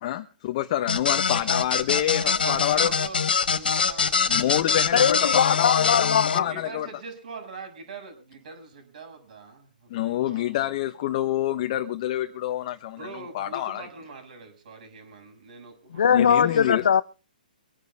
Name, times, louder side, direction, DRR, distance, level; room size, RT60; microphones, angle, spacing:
voice 1, 0.0-2.9 4.3-6.9 9.9-13.9 16.1-16.9, left 13 dB, 40° left, 1.2 m, -27 dB
sound 1, 0.9-6.4, left 6 dB, 85° left, 1.4 m, -24 dB
voice 2, 2.2-4.6 6.3-10.6 12.9-16.6, right 4 dB, 60° right, 6.7 m, -42 dB
voice 3, 4.9-6.5 15.9-17.0, left 7 dB, 70° left, 0.9 m, -21 dB
25.0 x 9.7 x 3.6 m
hypercardioid pair, 145°, 5 cm